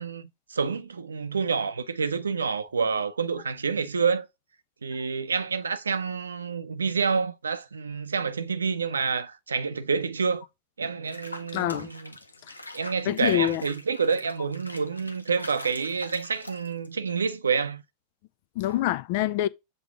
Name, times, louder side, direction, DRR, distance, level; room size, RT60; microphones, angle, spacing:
voice 1, 0.0-4.3 4.8-10.4 10.8-12.1 12.7-17.8, right 5 dB, 75° right, 0.6 m, -28 dB
Water / Bathtub (filling or washing), 11.1-17.0, left 1 dB, 85° left, 0.7 m, -43 dB
voice 2, 11.5-11.9 13.1-13.6 18.6-19.5, left 14 dB, 50° left, 0.4 m, -25 dB
7.6 x 2.8 x 4.7 m
figure-of-eight pair, 90°, 0 cm